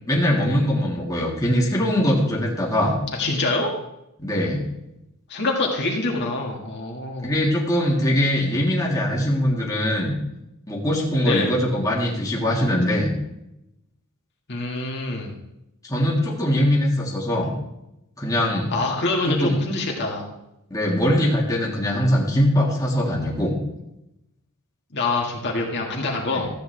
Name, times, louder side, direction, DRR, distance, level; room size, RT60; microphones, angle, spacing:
voice 1, 0.1-2.9 4.2-4.7 7.2-10.1 10.7-13.1 15.8-17.5 18.2-18.7 19.3-19.6 20.7-23.5 26.3-26.5, equal, 15° left, -3 dB, 1.8 m, -22 dB
voice 2, 3.2-3.7 5.3-7.3 11.2-11.6 14.5-15.3 18.7-20.2 24.9-26.5, left 2 dB, 50° left, -1 dB, 1.8 m, -25 dB
13.5 x 8.4 x 3.3 m, 0.87 s
head